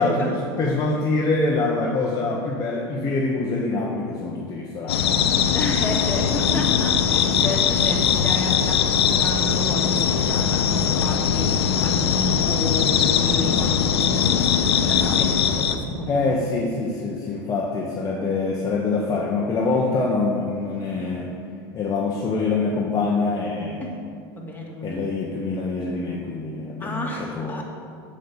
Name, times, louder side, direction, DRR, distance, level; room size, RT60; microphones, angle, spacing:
voice 1, 0.0-5.4 16.1-21.3 21.7-23.8 24.8-27.6, left 3 dB, 30° left, -2 dB, 1.2 m, -25 dB
sound 1, 4.9-15.8, left 7 dB, 90° left, 0.7 m, -21 dB
voice 2, 5.5-16.2 23.8-23.9 24.3-25.0 26.8-27.6, left 1 dB, 15° left, -2 dB, 2.2 m, -31 dB
7.6 x 6.5 x 7.2 m, 2.3 s
hypercardioid pair, 105°, 13 cm